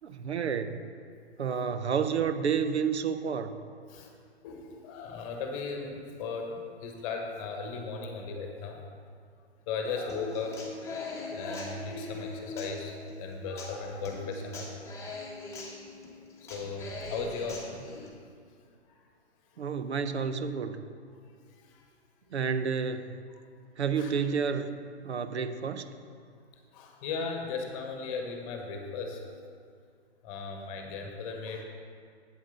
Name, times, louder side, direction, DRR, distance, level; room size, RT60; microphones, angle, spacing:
voice 1, 0.0-0.8 1.4-3.5 19.6-20.8 22.3-23.2 23.8-24.8 25.0-25.9, right 6 dB, 75° right, 10 dB, 0.8 m, -30 dB
voice 2, 4.4-8.8 9.7-10.6 11.3-14.7 16.5-17.7 24.0-24.1 26.7-29.2 30.2-31.6, left 4 dB, 30° left, 3 dB, 1.3 m, -36 dB
Human voice / Acoustic guitar, 10.1-18.1, left 3 dB, 10° left, 1.4 m, -41 dB
8.5 x 7.9 x 5.4 m, 2.2 s
figure-of-eight pair, 125°, 34 cm